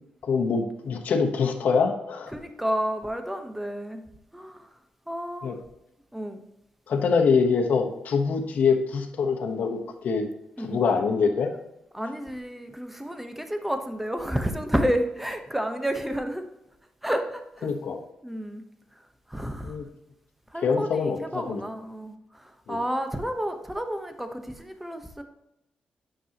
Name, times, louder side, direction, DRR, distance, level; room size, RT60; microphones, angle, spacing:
voice 1, 0.2-2.3 5.4-5.5 6.9-10.3 10.6-11.5 17.6-18.0 19.6-19.8 20.6-21.6 22.7-22.8, left 5 dB, 70° left, 3 dB, 1.1 m, -24 dB
voice 2, 2.3-4.0 4.3-4.7 5.1-5.5 6.1-6.4 10.6-10.8 11.9-16.4 17.0-17.7 18.2-18.6 19.3-19.8 20.5-25.2, equal, 5° right, 7 dB, 1.0 m, -30 dB
9.1 x 6.1 x 2.9 m, 0.89 s
cardioid pair, 80°, 3 cm